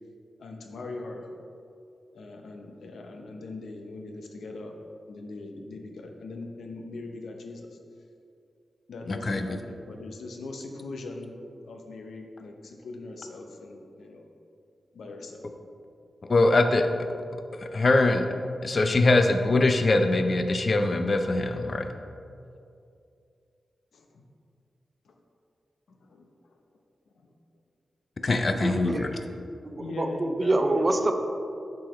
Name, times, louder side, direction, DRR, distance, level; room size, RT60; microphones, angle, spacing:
voice 1, 0.4-1.3 2.1-4.8 5.1-7.8 8.9-11.4 11.6-14.3 14.9-15.4 23.9-24.2 25.0-25.1 25.9-26.5 27.2-27.3 29.8-30.9, left 2 dB, 90° left, 3 dB, 0.6 m, -40 dB
voice 2, 9.1-9.5 16.2-17.1 17.5-18.3 18.6-21.9 28.2-29.1, left 2 dB, 40° left, 6 dB, 0.4 m, -23 dB
voice 3, 28.5-29.2 29.6-31.1, right 2 dB, 25° right, 5 dB, 0.4 m, -26 dB
7.5 x 4.8 x 3.1 m, 2.5 s
wide cardioid pair, 135°, 0 cm